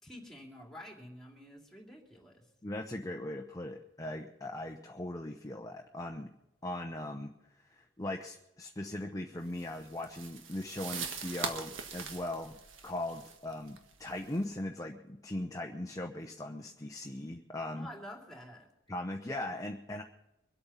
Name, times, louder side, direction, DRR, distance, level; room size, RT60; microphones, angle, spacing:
voice 1, 0.0-2.4 17.7-18.7, left 1 dB, ahead, 0 dB, 2.8 m, -49 dB
voice 2, 2.6-6.3 6.6-7.3 7.7-12.6 12.8-17.9 18.9-20.0, left 1 dB, 20° left, 2 dB, 0.9 m, -39 dB
sound 1, 9.5-14.4, right 5 dB, 90° right, 1.6 m, -42 dB
23.5 x 8.7 x 5.7 m, 0.92 s
head